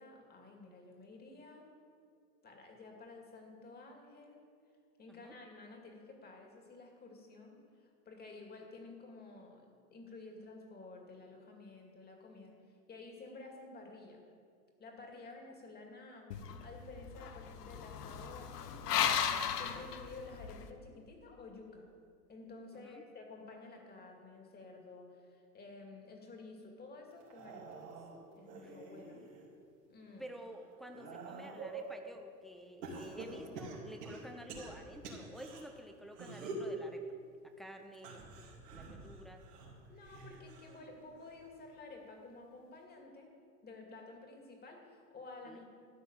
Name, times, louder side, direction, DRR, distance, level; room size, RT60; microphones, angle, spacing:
voice 1, 0.0-1.7 2.4-4.4 5.0-12.5 12.9-14.2 14.8-21.9 22.3-27.8 28.4-29.3 29.9-30.3 39.9-43.3 43.6-45.7, left 3 dB, 20° left, 2 dB, 2.3 m, -52 dB
sound 1, 16.3-20.7, left 8 dB, 80° left, 1.1 m, -36 dB
sound 2, 27.2-29.5 30.0-32.0 32.8-35.6 36.1-36.7 37.9-40.8 41.2-41.6 42.8-42.9, right 3 dB, 80° right, 3.2 m, -47 dB
voice 2, 30.2-37.1 37.6-38.2 38.7-39.4 45.5-45.6, equal, ahead, 4 dB, 0.8 m, -51 dB
13.0 x 5.8 x 8.7 m, 2.3 s
hypercardioid pair, 120°, 47 cm